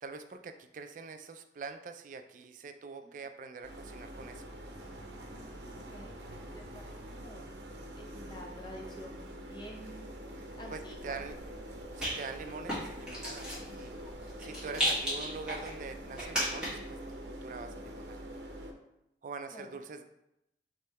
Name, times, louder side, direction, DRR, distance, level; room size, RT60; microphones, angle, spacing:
voice 1, 0.0-4.4 10.7-11.3 12.0-13.9 14.4-18.3 19.2-20.0, right 4 dB, 45° right, 7 dB, 0.3 m, -44 dB
sound 1, 3.6-18.7, equal, 80° right, 0.6 m, -45 dB
voice 2, 5.6-6.2 6.5-7.5 8.0-10.2 10.6-11.2 14.8-15.0 19.5-19.8, equal, 25° left, 0 dB, 0.7 m, -49 dB
Rattle, 10.8-16.9, equal, 5° right, 1.4 m, -36 dB
3.7 x 3.1 x 4.0 m, 0.85 s
head